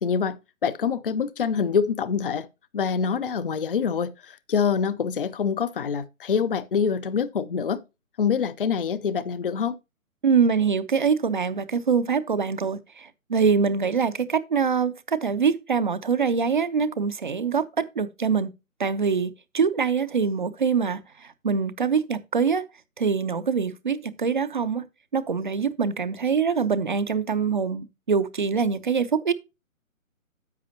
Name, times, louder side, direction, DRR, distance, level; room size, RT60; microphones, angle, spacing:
voice 1, 0.0-2.5 2.7-7.8 8.2-9.8, left 6 dB, 40° left, 0.6 m, -25 dB
voice 2, 10.2-18.5 18.8-22.7 23.0-24.8 25.1-29.3, right 6 dB, 35° right, 0.6 m, -24 dB
10.5 x 7.9 x 2.7 m
figure-of-eight pair, 140°, 42 cm